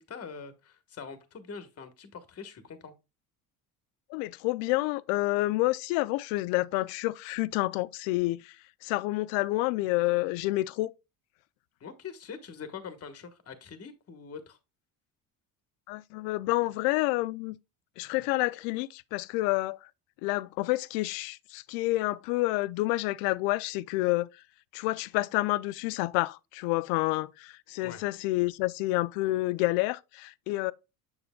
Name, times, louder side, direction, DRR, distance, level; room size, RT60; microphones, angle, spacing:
voice 1, 0.0-2.9 11.8-14.6 27.8-28.0, left 6 dB, 35° left, 1.2 m, -43 dB
voice 2, 4.1-8.6 8.8-10.9 15.9-17.6 18.0-19.8 20.2-24.3 24.7-30.7, left 20 dB, 75° left, 0.5 m, -29 dB
7.0 x 6.7 x 2.2 m
hypercardioid pair, 75°, 43 cm